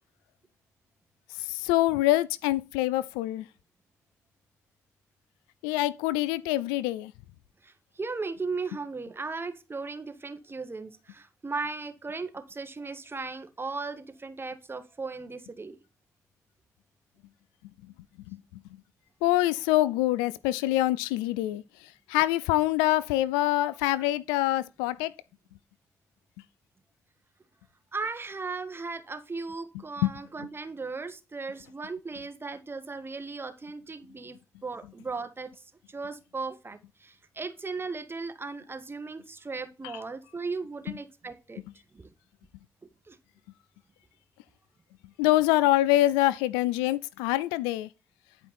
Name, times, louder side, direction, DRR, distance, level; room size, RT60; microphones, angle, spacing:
voice 1, 1.3-3.5 5.6-7.1 18.3-18.6 19.2-25.1 30.0-30.1 30.4-30.5 40.9-41.0 45.2-47.9, left 16 dB, 90° left, 0.4 m, -25 dB
voice 2, 7.6-15.8 27.9-34.4 34.6-35.5 35.9-41.6 41.9-42.1 43.1-43.2, right 4 dB, 30° right, 1.7 m, -37 dB
10.5 x 5.1 x 4.3 m
hypercardioid pair, 45°, 7 cm